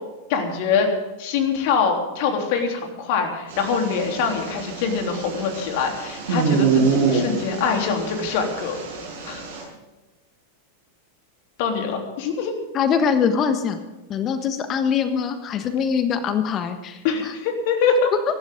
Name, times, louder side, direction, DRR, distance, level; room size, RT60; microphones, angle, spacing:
voice 1, 0.3-0.9 1.2-8.8 9.2-9.4 11.6-12.5 17.0-18.1, left 5 dB, 50° left, 3 dB, 3.4 m, -24 dB
sound 1, 3.5-9.6, right 5 dB, 60° right, 6.6 m, -26 dB
voice 2, 12.7-13.8 14.1-17.3, left 7 dB, 30° left, 9 dB, 1.4 m, -23 dB
24.0 x 13.0 x 3.8 m, 1.1 s
figure-of-eight pair, 90°, 0 cm